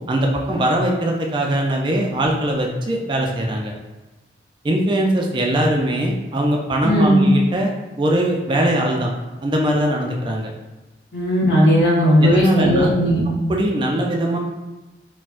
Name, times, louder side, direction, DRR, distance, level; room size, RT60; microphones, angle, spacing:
voice 1, 0.1-3.7 4.6-7.7 8.0-9.1 9.4-10.5 12.2-12.9 13.5-14.4, right 1 dB, 25° right, 0 dB, 0.3 m, -21 dB
voice 2, 6.8-7.2 11.1-13.2, equal, 80° left, -4 dB, 1.0 m, -16 dB
4.1 x 2.1 x 2.4 m, 1.1 s
head